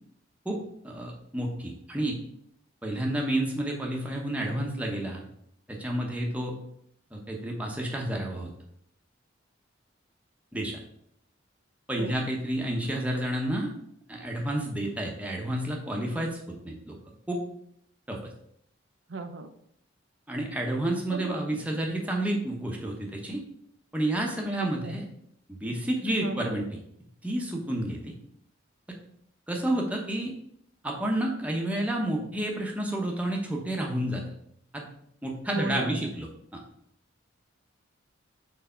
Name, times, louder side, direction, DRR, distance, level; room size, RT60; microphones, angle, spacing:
voice 1, 0.8-2.2 2.8-5.2 5.7-6.6 7.1-8.5 10.5-10.8 11.9-13.7 14.1-17.0 17.3-17.4 18.1-18.2 20.3-23.4 23.9-25.0 25.5-26.7 27.2-28.1 29.5-30.3 30.8-34.3 34.7-34.9 35.2-36.3 36.5-36.6, right 1 dB, 5° right, 0 dB, 0.9 m, -30 dB
voice 2, 19.1-19.5 21.1-21.6 24.6-24.9 26.2-26.5 35.5-36.0, right 2 dB, 70° right, 7 dB, 0.6 m, -36 dB
4.7 x 4.1 x 5.5 m, 0.71 s
head